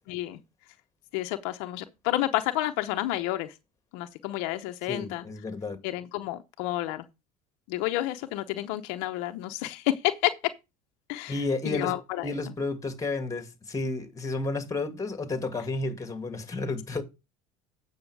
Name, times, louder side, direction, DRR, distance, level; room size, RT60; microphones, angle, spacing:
voice 1, 0.1-0.4 1.1-3.5 3.9-5.2 5.8-7.1 7.7-10.5 11.1-12.3, left 15 dB, 75° left, 0.8 m, -30 dB
voice 2, 4.9-5.8 11.3-11.9 12.2-17.0, left 3 dB, 20° left, 2.0 m, -31 dB
8.8 x 6.2 x 4.7 m
supercardioid pair, 85°, 18 cm